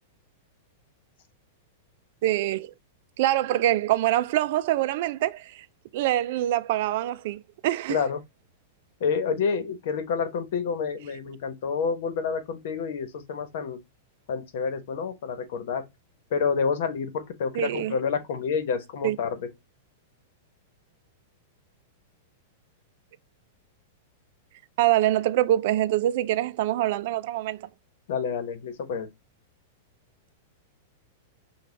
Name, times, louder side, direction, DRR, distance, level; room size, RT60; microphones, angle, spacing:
voice 1, 2.2-2.7 3.2-5.7 5.9-8.0 17.5-18.0 19.0-19.2 24.8-27.7, right 14 dB, 60° right, 0.4 m, -25 dB
voice 2, 7.9-8.2 9.0-13.8 14.3-15.8 16.3-19.4 28.1-29.1, left 6 dB, 65° left, 1.1 m, -28 dB
5.8 x 2.4 x 3.3 m
hypercardioid pair, 130°, 0 cm